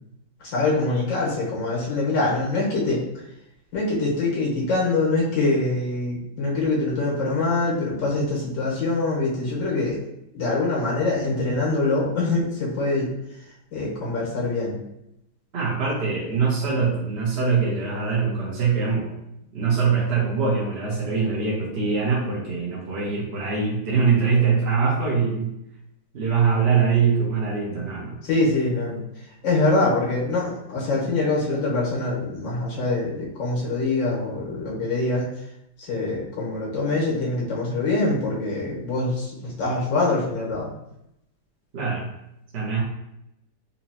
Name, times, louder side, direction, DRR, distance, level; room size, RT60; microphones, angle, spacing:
voice 1, 0.4-3.0 3.7-10.0 10.3-13.1 13.7-14.8 28.2-29.0 29.4-35.3 35.9-40.7, left 2 dB, 70° left, -5 dB, 1.9 m, -24 dB
voice 2, 15.5-19.1 19.5-25.5 26.1-28.1 41.7-42.1 42.5-42.8, right 5 dB, 50° right, -5 dB, 0.8 m, -23 dB
4.2 x 2.8 x 2.8 m, 0.82 s
omnidirectional pair, 2.1 m